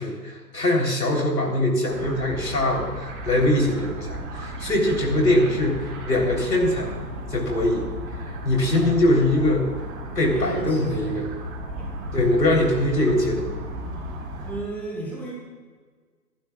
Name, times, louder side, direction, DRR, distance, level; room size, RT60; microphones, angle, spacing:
voice 1, 0.0-7.0 7.3-7.9 8.4-9.7 10.2-11.2 12.1-13.6, left 1 dB, 75° left, 0 dB, 3.9 m, -22 dB
sound 1, 1.9-14.6, right 1 dB, 25° right, 4.2 m, -35 dB
voice 2, 10.2-11.2 11.8-12.1 14.4-15.3, right 1 dB, 5° left, -4 dB, 1.7 m, -33 dB
25.0 x 11.5 x 2.4 m, 1.5 s
figure-of-eight pair, 135°, 49 cm